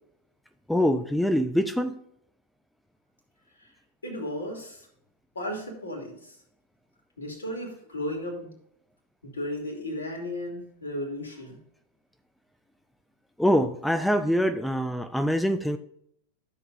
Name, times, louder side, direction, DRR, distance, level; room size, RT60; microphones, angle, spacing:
voice 1, 0.7-2.0 13.4-15.8, equal, ahead, 9 dB, 0.5 m, -24 dB
voice 2, 4.0-4.9 5.3-6.4 7.2-8.5 9.2-11.6, left 1 dB, 70° left, 1 dB, 2.7 m, -35 dB
12.5 x 7.1 x 2.5 m, 0.70 s
figure-of-eight pair, 90°, 0 cm